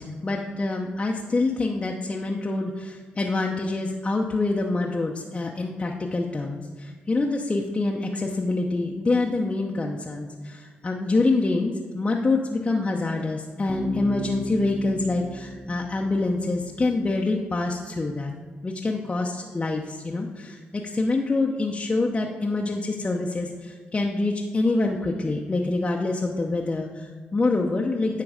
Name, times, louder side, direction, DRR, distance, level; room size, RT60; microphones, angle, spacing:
voice 1, 0.0-18.3 18.6-28.2, left 3 dB, 30° left, 0 dB, 0.7 m, -26 dB
Bass guitar, 13.7-17.4, right 1 dB, 15° right, 1.0 m, -35 dB
9.7 x 3.8 x 4.9 m, 1.5 s
cardioid pair, 70°, 4 cm